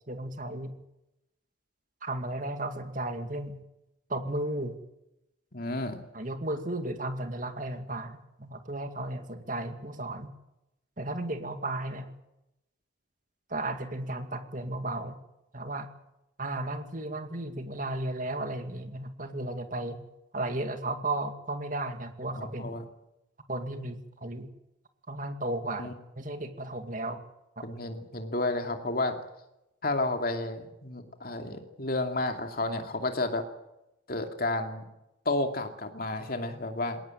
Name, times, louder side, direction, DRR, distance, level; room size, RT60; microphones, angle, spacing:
voice 1, 0.1-0.7 2.0-3.6 4.1-4.8 6.1-10.3 11.0-12.1 13.5-15.1 15.5-15.9 16.4-20.0 20.3-22.8 23.5-24.5 25.1-27.2 27.6-27.7, right 2 dB, 40° right, 7 dB, 2.2 m, -34 dB
voice 2, 5.5-6.0 22.4-22.8 25.8-25.9 27.6-29.2 29.8-33.4 34.1-34.8 35.3-37.0, left 2 dB, 50° left, 5 dB, 2.6 m, -31 dB
20.5 x 18.5 x 8.9 m, 0.90 s
head